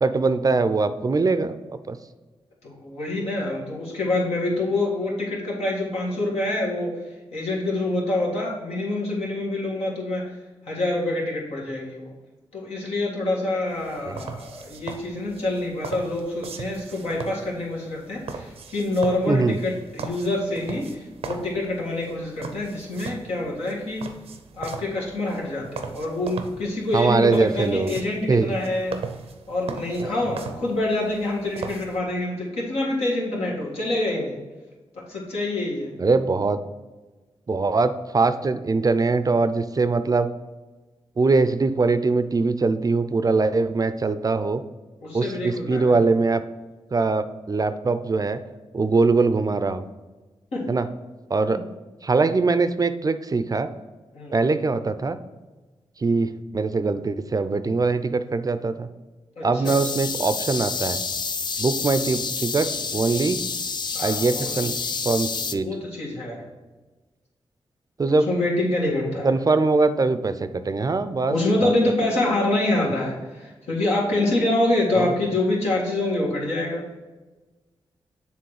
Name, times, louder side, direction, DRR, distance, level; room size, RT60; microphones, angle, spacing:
voice 1, 0.0-1.6 1.9-2.0 14.1-14.3 19.3-19.6 26.9-27.9 28.3-28.6 30.0-30.1 36.0-36.6 37.5-40.3 41.2-44.6 45.1-46.4 46.9-48.4 48.7-49.8 50.7-50.9 51.3-51.6 52.0-53.7 54.3-55.2 56.0-58.9 59.4-61.0 61.6-63.4 64.0-64.8 65.0-65.7 68.0-68.3 69.2-71.4 71.6-71.7 74.9-75.1, right 3 dB, 35° right, 12 dB, 0.4 m, -22 dB
voice 2, 2.6-6.9 7.3-10.3 10.7-12.1 12.5-24.0 24.5-28.9 29.5-34.4 35.0-35.9 45.0-46.0 50.5-50.6 51.5-51.6 54.1-54.4 59.4-59.8 63.9-64.6 65.6-66.4 68.1-69.3 71.3-76.8, left 2 dB, 85° left, -5 dB, 1.8 m, -26 dB
sound 1, 13.7-32.0, right 5 dB, 80° right, 0.6 m, -39 dB
sound 2, 59.7-65.6, left 5 dB, 45° left, 0.4 m, -29 dB
7.0 x 3.5 x 4.8 m, 1.2 s
cardioid pair, 55°, 10 cm